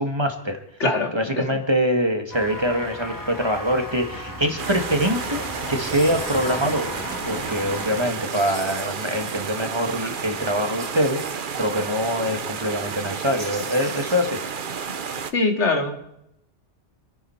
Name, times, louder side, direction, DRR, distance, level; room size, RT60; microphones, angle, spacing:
voice 1, 0.0-0.6 1.1-5.4 5.7-6.9 7.3-14.4, equal, 25° right, 4 dB, 1.5 m, -24 dB
voice 2, 0.8-1.5 15.3-16.0, left 2 dB, 80° left, 3 dB, 2.5 m, -22 dB
sound 1, 2.3-8.1, left 1 dB, 15° left, 2.6 m, -35 dB
sound 2, 4.6-15.3, right 6 dB, 50° right, 1.0 m, -31 dB
sound 3, 4.9-5.1 5.9-6.7 8.3-9.5 10.8-11.5 13.4-14.4, right 2 dB, 65° right, 2.9 m, -41 dB
27.5 x 10.0 x 4.3 m, 0.81 s
omnidirectional pair, 1.2 m